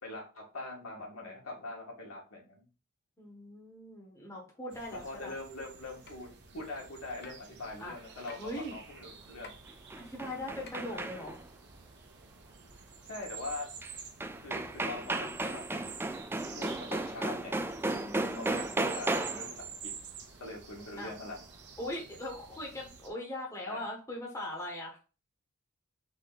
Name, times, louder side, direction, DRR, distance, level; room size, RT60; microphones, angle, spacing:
voice 1, 0.0-2.7 4.9-6.3 6.5-9.6 10.9-11.0 13.0-13.7 14.4-16.0 16.5-17.5 18.4-19.9 20.4-21.4 23.7-23.8, left 2 dB, 70° left, -2 dB, 1.9 m, -42 dB
voice 2, 3.2-5.3 7.8-8.0 8.3-8.7 10.0-11.4 17.9-18.8 21.0-21.1 21.8-25.0, left 1 dB, 15° left, -2 dB, 1.2 m, -40 dB
sound 1, 4.7-23.1, right 6 dB, 55° right, 0.9 m, -49 dB
sound 2, 6.1-6.2 7.2-7.5 8.3-8.5 9.4-9.5 10.7-10.8, left 3 dB, 50° left, 0.8 m, -48 dB
sound 3, 9.7-11.5 13.8-13.9 14.2-19.6, right 2 dB, 10° right, 0.3 m, -34 dB
4.1 x 3.1 x 4.0 m, 0.33 s
head